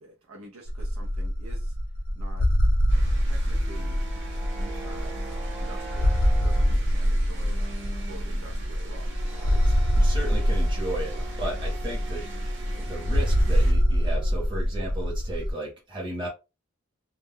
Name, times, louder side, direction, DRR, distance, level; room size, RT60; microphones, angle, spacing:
voice 1, 0.0-1.8 2.1-2.5 3.2-4.0 4.6-5.2 5.6-7.6 8.0-9.6 11.1-11.3, right 2 dB, 90° right, 0.6 m, -47 dB
sound 1, 0.7-15.5, equal, 85° left, 0.6 m, -25 dB
sound 2, 2.9-13.7, right 3 dB, 60° right, 0.7 m, -46 dB
sound 3, 3.5-14.7, right 3 dB, ahead, 0.4 m, -44 dB
voice 2, 9.6-12.2 12.7-16.3, right 1 dB, 20° right, 0.8 m, -35 dB
2.2 x 2.0 x 3.6 m
head